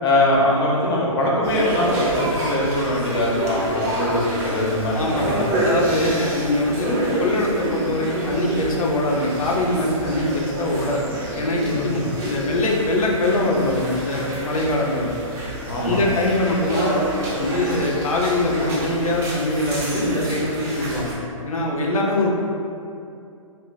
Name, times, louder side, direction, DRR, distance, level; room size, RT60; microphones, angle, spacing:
voice 1, 0.0-5.7 11.7-12.1 15.7-16.0, left 1 dB, 45° left, -4 dB, 0.7 m, -22 dB
sound 1, 1.4-21.1, right 1 dB, 15° right, 0.5 m, -28 dB
voice 2, 4.9-11.1 11.4-15.2 15.8-17.0 17.3-21.1 21.5-22.4, left 1 dB, 85° left, -2 dB, 0.6 m, -23 dB
2.2 x 2.1 x 3.8 m, 2.5 s
hypercardioid pair, 145°, 17 cm